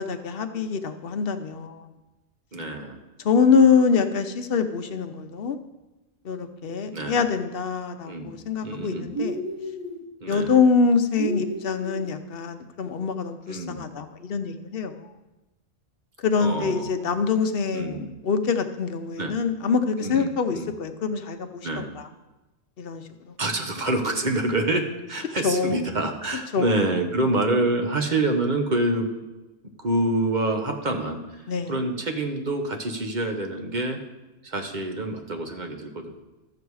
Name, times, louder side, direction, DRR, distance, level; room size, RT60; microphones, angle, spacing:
voice 1, 0.0-1.9 3.2-5.6 6.2-9.4 10.3-14.9 16.2-22.1 22.8-23.4 25.4-25.8 26.5-26.8 31.5-31.7, left 5 dB, 55° left, 8 dB, 0.9 m, -24 dB
voice 2, 2.5-3.0 6.9-7.2 8.0-9.1 10.2-10.6 13.5-13.8 16.4-17.0 17.7-18.1 19.2-19.4 20.0-20.7 21.6-21.9 23.4-29.1 29.8-34.0 34.4-36.1, right 2 dB, 40° right, 4 dB, 1.1 m, -27 dB
sound 1, 9.1-10.0 11.1-12.1, right 1 dB, 70° right, 1.6 m, -31 dB
13.0 x 7.0 x 4.7 m, 1.1 s
omnidirectional pair, 1.3 m